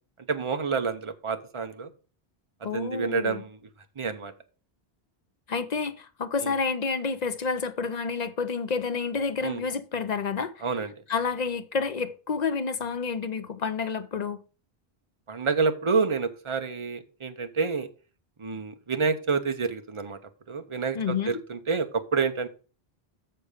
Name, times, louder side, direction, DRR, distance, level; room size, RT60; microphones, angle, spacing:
voice 1, 0.3-1.9 2.7-3.6 4.0-4.3 6.4-6.5 9.4-9.6 10.6-10.9 15.3-17.9 18.4-20.2 20.5-22.5, right 5 dB, 30° right, 0.8 m, -28 dB
voice 2, 2.6-3.4 5.5-10.7 11.1-14.4 20.9-21.4, left 5 dB, 45° left, 0.7 m, -29 dB
6.8 x 6.7 x 5.0 m
omnidirectional pair, 1.0 m